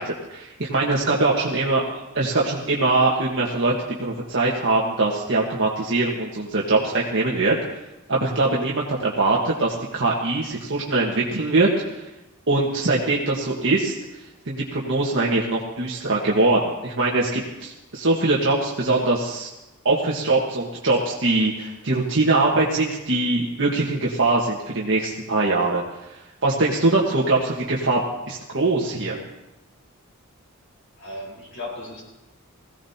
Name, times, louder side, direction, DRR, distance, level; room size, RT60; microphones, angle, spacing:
voice 1, 0.0-3.7 4.0-7.5 8.1-11.7 12.5-13.9 14.5-19.5 19.8-25.8 26.4-28.0 28.3-29.2, right 2 dB, 60° right, -3 dB, 1.5 m, -22 dB
voice 2, 31.0-32.0, left 1 dB, 65° left, -1 dB, 4.6 m, -35 dB
21.0 x 16.0 x 2.9 m, 0.99 s
head